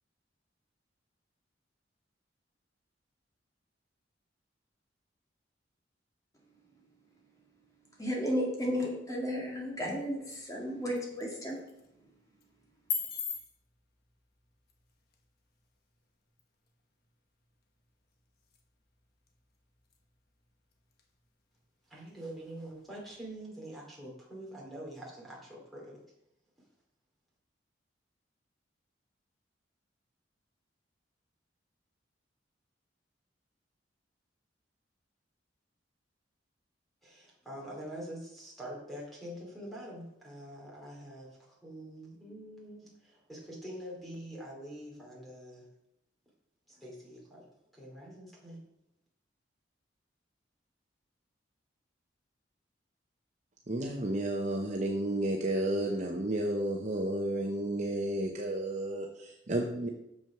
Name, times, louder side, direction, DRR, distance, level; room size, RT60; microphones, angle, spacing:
voice 1, 8.0-11.6, equal, 20° left, -2 dB, 2.1 m, -33 dB
sound 1, 9.4-23.5, left 6 dB, 55° left, 1.1 m, -46 dB
voice 2, 21.9-26.0 37.0-45.7 46.7-48.6, right 1 dB, ahead, -4 dB, 2.6 m, -45 dB
voice 3, 53.7-59.9, right 1 dB, 40° right, 2 dB, 0.8 m, -32 dB
7.0 x 6.2 x 5.8 m, 0.83 s
head